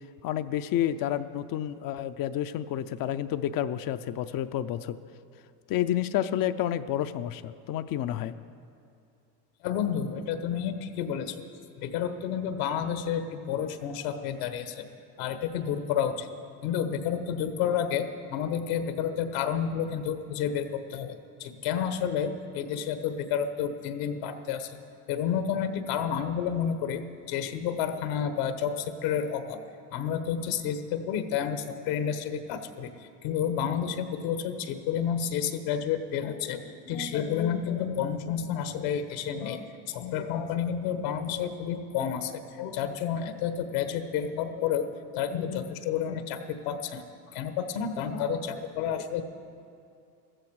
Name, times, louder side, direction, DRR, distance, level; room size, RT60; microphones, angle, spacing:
voice 1, 0.2-5.0 5.7-8.3, left 11 dB, 45° left, 11 dB, 0.6 m, -30 dB
voice 2, 9.6-11.4 11.8-14.8 15.2-16.3 16.6-21.1 21.4-24.8 25.1-29.6 29.9-49.2, left 8 dB, 75° left, 9 dB, 1.3 m, -30 dB
15.5 x 13.5 x 4.8 m, 2.5 s
supercardioid pair, 105°, 50 cm